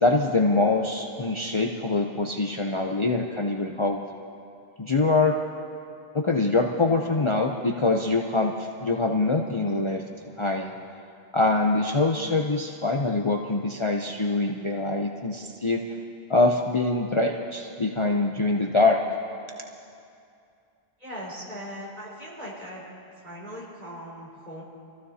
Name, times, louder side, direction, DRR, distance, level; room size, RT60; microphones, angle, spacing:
voice 1, 0.0-4.0 4.8-5.4 6.1-10.0 10.4-10.7 11.3-15.8 16.3-19.0, left 3 dB, 35° left, 1 dB, 0.6 m, -24 dB
voice 2, 21.0-22.8 23.2-24.6, equal, 45° right, -7 dB, 4.7 m, -39 dB
25.5 x 15.0 x 2.8 m, 2.5 s
omnidirectional pair, 1.0 m